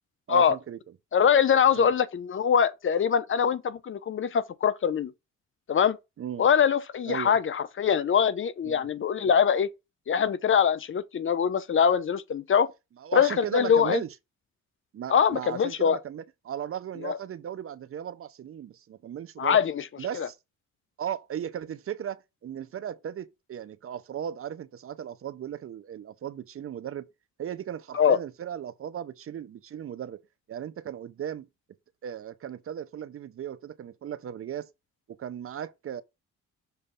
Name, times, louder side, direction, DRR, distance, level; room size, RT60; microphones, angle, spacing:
voice 1, 0.3-0.8 1.7-1.9 6.2-6.5 7.1-7.4 8.6-8.9 13.0-14.1 14.9-19.6 20.0-20.4 21.0-27.1 27.4-30.2 30.5-31.5 32.0-34.7 35.1-36.0, right 9 dB, 45° right, 0.6 m, -36 dB
voice 2, 1.1-5.1 5.7-6.0 6.4-9.7 10.1-12.7 13.1-14.0 15.1-16.0 17.0-17.2 19.4-19.9 20.1-20.3 27.9-28.2, left 7 dB, 40° left, 0.7 m, -23 dB
6.8 x 3.2 x 5.5 m
cardioid pair, 90°, 30 cm